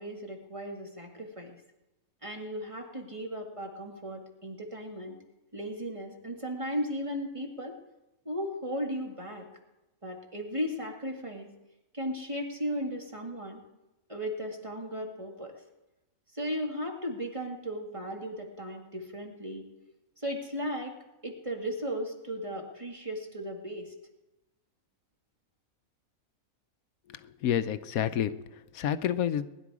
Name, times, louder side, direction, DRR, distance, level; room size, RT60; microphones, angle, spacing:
voice 1, 0.0-1.6 2.2-5.2 5.5-7.7 8.3-9.5 10.0-11.5 11.9-13.6 14.1-15.6 16.3-19.7 20.2-21.0 21.2-23.8, equal, 20° right, 1 dB, 1.9 m, -36 dB
voice 2, 27.1-29.5, left 9 dB, 80° left, 12 dB, 1.1 m, -30 dB
20.0 x 11.5 x 4.8 m, 0.98 s
omnidirectional pair, 1.5 m